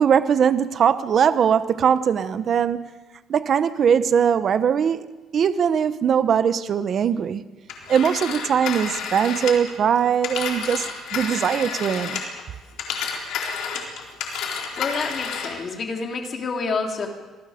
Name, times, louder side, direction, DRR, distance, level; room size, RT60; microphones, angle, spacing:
voice 1, 0.0-2.9 3.3-5.1 5.3-7.5 7.9-10.9 11.1-12.2, right 7 dB, 40° right, 12 dB, 0.9 m, -20 dB
Telephone, 7.7-12.4 12.7-15.6, left 6 dB, 70° left, 4.0 m, -30 dB
voice 2, 14.8-17.1, left 4 dB, 35° left, 2 dB, 3.2 m, -28 dB
26.5 x 20.0 x 5.1 m, 1.2 s
cardioid pair, 155°, 0 cm